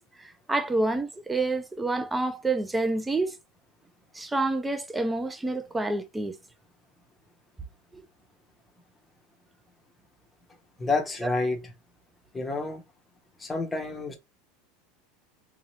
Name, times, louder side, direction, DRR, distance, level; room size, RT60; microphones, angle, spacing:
voice 1, 0.0-3.3 4.1-6.4 7.9-8.0, right 2 dB, 10° right, 0.5 m, -28 dB
voice 2, 10.8-11.6 12.3-12.8 13.4-14.2, left 3 dB, 10° left, 0.9 m, -29 dB
3.5 x 2.8 x 3.2 m
supercardioid pair, 160°, 0 cm